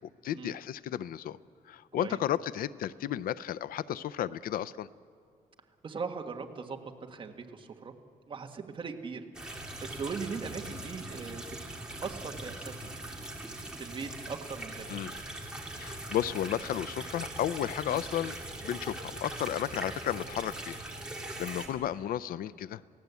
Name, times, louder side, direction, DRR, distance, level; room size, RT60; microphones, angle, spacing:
voice 1, 0.2-1.4 1.7-4.9 14.9-15.1 15.7-20.8 21.4-22.8, left 11 dB, 75° left, 17 dB, 0.5 m, -33 dB
voice 2, 5.8-7.9 8.3-9.2 9.5-11.5 12.0-12.9 13.8-15.0 17.9-18.1, right 5 dB, 35° right, 3 dB, 1.7 m, -39 dB
sound 1, 9.3-21.7, right 1 dB, 5° right, 2.3 m, -41 dB
29.0 x 17.0 x 8.3 m, 2.5 s
cardioid pair, 175°, 15 cm